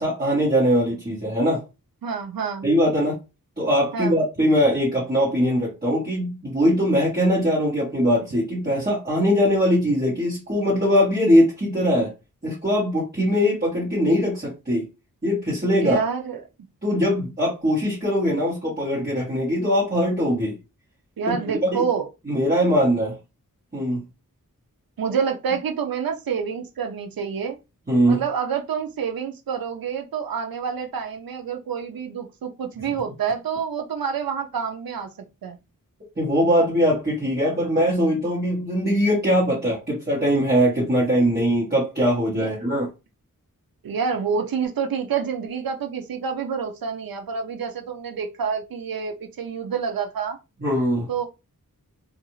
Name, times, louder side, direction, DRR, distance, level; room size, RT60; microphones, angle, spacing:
voice 1, 0.0-1.6 2.6-3.1 3.6-12.1 12.4-14.8 15.2-16.0 16.8-20.5 21.3-21.4 21.7-21.8 22.3-23.1 23.7-24.0 27.9-28.2 36.2-42.9 50.6-51.1, equal, 25° right, 1.2 m, -21 dB
voice 2, 2.0-2.7 3.9-4.2 15.7-16.4 21.2-22.1 25.0-27.6 28.1-35.1 35.4-35.6 42.4-42.5 43.8-50.4 51.1-51.3, right 6 dB, 80° right, 0.5 m, -28 dB
2.5 x 2.3 x 3.0 m
wide cardioid pair, 60°, 35 cm